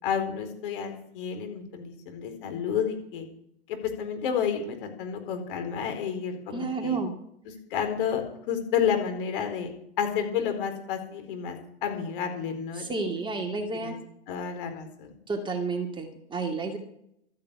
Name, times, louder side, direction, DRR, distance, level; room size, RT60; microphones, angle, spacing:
voice 1, 0.0-3.2 4.0-7.0 7.7-8.2 8.5-9.7 10.0-12.9 13.8-13.9 14.3-15.1, left 7 dB, 55° left, 5 dB, 4.6 m, -30 dB
voice 2, 6.5-7.1 12.7-14.0 15.3-16.8, right 4 dB, 15° right, 3 dB, 2.1 m, -31 dB
13.0 x 10.5 x 8.5 m, 0.74 s
hypercardioid pair, 120°, 33 cm